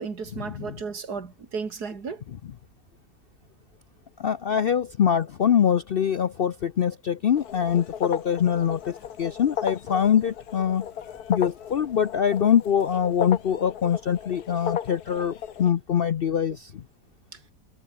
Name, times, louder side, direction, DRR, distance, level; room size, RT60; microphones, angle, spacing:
voice 1, 0.0-2.2, right 5 dB, 85° right, 3.0 m, -34 dB
voice 2, 4.2-10.9 11.3-16.8, left 8 dB, 60° left, 0.6 m, -24 dB
sound 1, 7.4-15.7, left 9 dB, 75° left, 1.7 m, -35 dB
omnidirectional pair, 1.7 m